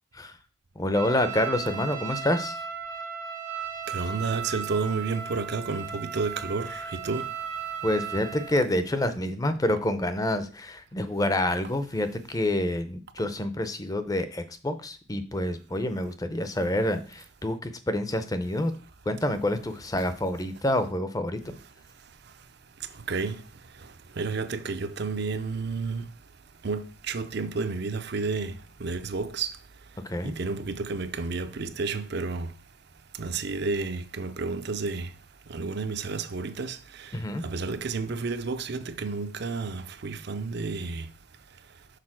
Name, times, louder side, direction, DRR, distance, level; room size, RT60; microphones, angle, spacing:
voice 1, 0.8-2.6 7.8-18.7 19.1-21.6 30.0-30.3 37.1-37.4, left 1 dB, 15° left, 0.6 m, -28 dB
Trumpet, 0.9-8.6, right 7 dB, 90° right, 1.5 m, -36 dB
voice 2, 3.9-7.3 23.1-23.4 24.2-26.1 26.6-28.5 28.8-29.6 30.2-32.5 33.2-35.1 35.5-37.2 37.4-41.1, right 4 dB, 50° right, 0.6 m, -31 dB
6.6 x 4.1 x 6.0 m
head